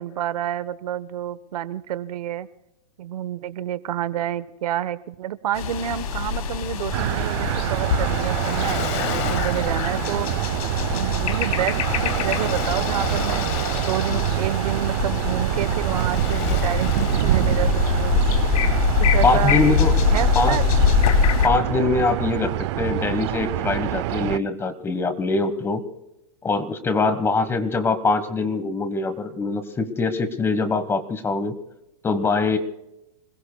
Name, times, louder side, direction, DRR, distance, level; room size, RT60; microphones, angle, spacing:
voice 1, 0.0-2.5 3.0-10.3 10.9-17.7 18.0-18.2 19.0-19.6 20.0-20.6, right 11 dB, 75° right, 16 dB, 1.0 m, -29 dB
sound 1, 5.5-21.5, left 6 dB, 70° left, 3.1 m, -24 dB
sound 2, 6.9-24.4, right 17 dB, 45° right, 0.5 m, -26 dB
Waves surf, 7.2-19.6, left 11 dB, 45° left, 1.4 m, -36 dB
voice 2, 19.2-20.0 20.3-20.6 21.4-25.8 26.4-31.6 32.0-32.6, left 3 dB, 10° left, 11 dB, 1.2 m, -23 dB
27.0 x 21.0 x 2.3 m, 0.86 s
supercardioid pair, 155°, 20 cm